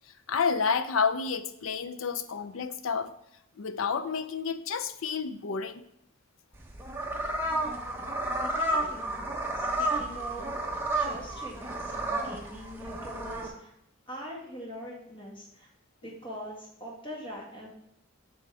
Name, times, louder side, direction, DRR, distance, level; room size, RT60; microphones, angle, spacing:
voice 1, 0.3-3.1 3.6-5.8, left 5 dB, 70° left, 0.5 m, -30 dB
sound 1, 6.5-13.5, right 1 dB, 10° right, 0.8 m, -31 dB
voice 2, 8.3-9.1 9.6-10.5 10.9-13.7 14.1-15.7 16.0-17.7, equal, 25° left, 1.8 m, -43 dB
7.5 x 6.3 x 3.4 m
head